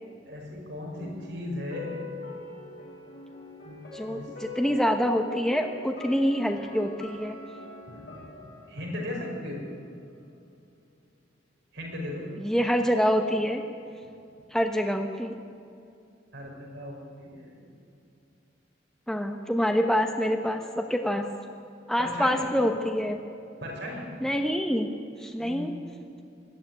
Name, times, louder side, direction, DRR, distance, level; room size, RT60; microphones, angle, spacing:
voice 1, 0.3-1.9 3.6-4.3 7.9-9.6 11.7-12.3 16.3-17.5 22.0-22.5 23.6-24.0 25.4-25.7, left 1 dB, 60° right, -1 dB, 5.6 m, -37 dB
sound 1, 0.9-9.9 10.2-10.3, left 4 dB, 60° left, 7.2 m, -43 dB
voice 2, 3.9-7.4 12.4-13.6 14.5-15.4 19.1-21.3 21.9-23.2 24.2-24.9 25.2-25.7, equal, 5° left, 4 dB, 1.0 m, -26 dB
19.0 x 14.0 x 9.9 m, 2.6 s
head